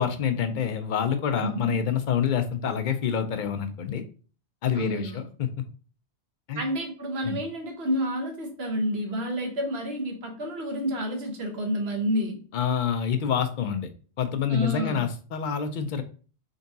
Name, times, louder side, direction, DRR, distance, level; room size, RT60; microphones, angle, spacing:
voice 1, 0.0-4.0 4.6-5.6 6.5-6.6 7.2-7.4 12.5-13.9 14.2-16.0, left 8 dB, 55° left, 8 dB, 0.6 m, -27 dB
voice 2, 1.4-1.8 4.7-5.2 6.6-12.4 14.5-15.0, equal, 65° right, 3 dB, 1.2 m, -29 dB
3.9 x 3.5 x 2.7 m, 0.38 s
omnidirectional pair, 1.1 m